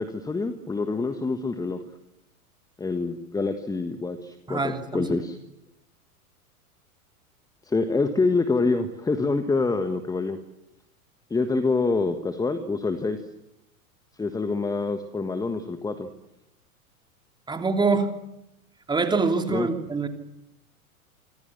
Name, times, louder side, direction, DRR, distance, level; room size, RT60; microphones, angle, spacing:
voice 1, 0.0-1.8 2.8-5.4 7.6-10.4 11.3-13.2 14.2-16.1 19.5-19.7, left 3 dB, 10° left, 9 dB, 1.5 m, -26 dB
voice 2, 4.5-5.2 17.5-18.1 18.9-20.1, right 4 dB, 10° right, 6 dB, 3.1 m, -25 dB
27.0 x 26.0 x 7.4 m, 0.86 s
figure-of-eight pair, 95°, 44 cm